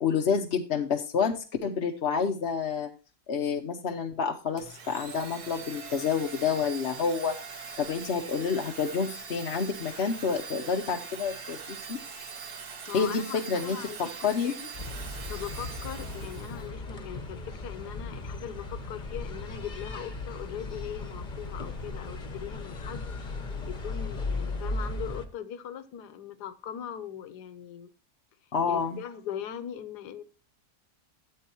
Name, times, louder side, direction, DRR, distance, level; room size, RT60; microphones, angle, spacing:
voice 1, 0.0-2.9 3.3-7.4 7.8-12.0 12.9-14.5 28.5-29.0, left 6 dB, 50° left, 3 dB, 0.8 m, -29 dB
Domestic sounds home sounds, 4.6-16.7, right 5 dB, 70° right, 1.8 m, -42 dB
voice 2, 12.6-14.7 15.3-23.4 23.7-27.9 28.7-30.2, left 9 dB, 80° left, 12 dB, 1.4 m, -40 dB
sound 1, 14.7-25.3, left 2 dB, 30° left, 1.1 m, -36 dB
13.0 x 8.4 x 2.9 m, 0.33 s
omnidirectional pair, 1.7 m